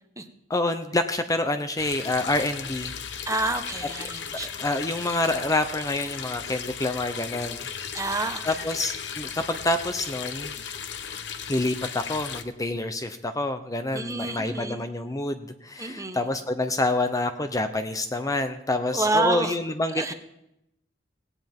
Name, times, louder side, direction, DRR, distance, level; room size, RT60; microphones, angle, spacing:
voice 1, 0.5-2.9 4.6-7.7 8.4-10.5 11.5-20.1, left 2 dB, 20° left, 8 dB, 0.7 m, -27 dB
sound 1, 1.8-12.4, left 7 dB, 80° left, 1.0 m, -36 dB
voice 2, 3.3-4.5 7.9-8.6 13.9-14.8 15.8-16.2 18.9-19.6 19.9-20.1, right 2 dB, 20° right, 7 dB, 1.1 m, -28 dB
18.0 x 17.0 x 3.7 m, 0.82 s
head